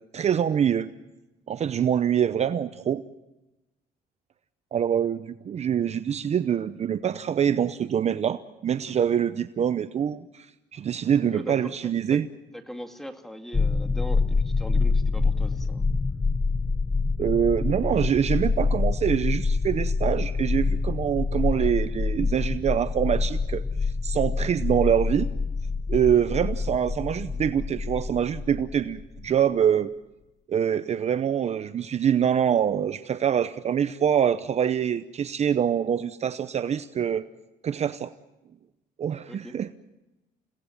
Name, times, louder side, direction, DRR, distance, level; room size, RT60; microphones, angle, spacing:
voice 1, 0.1-0.9 1.5-3.0 4.7-10.5 10.7-12.3 17.2-25.3 25.9-29.9 30.5-37.2 37.6-38.1 39.0-39.7, right 8 dB, 40° right, 12 dB, 0.8 m, -25 dB
voice 2, 11.3-12.2 12.5-15.8 39.3-39.5, equal, ahead, 5 dB, 2.4 m, -40 dB
sound 1, 13.5-29.3, left 4 dB, 15° left, 1.0 m, -26 dB
30.0 x 18.0 x 7.3 m, 1.0 s
cardioid pair, 110°, 17 cm